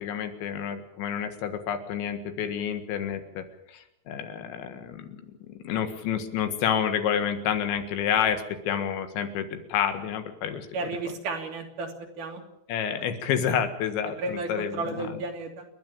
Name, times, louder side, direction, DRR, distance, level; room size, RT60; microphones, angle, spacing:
voice 1, 0.0-5.2 5.5-10.9 12.7-15.2, left 8 dB, 80° left, 8 dB, 4.0 m, -29 dB
voice 2, 10.7-11.9 12.2-12.4 14.2-15.7, right 3 dB, 50° right, 2 dB, 4.1 m, -33 dB
29.5 x 10.5 x 8.7 m, 0.84 s
omnidirectional pair, 5.1 m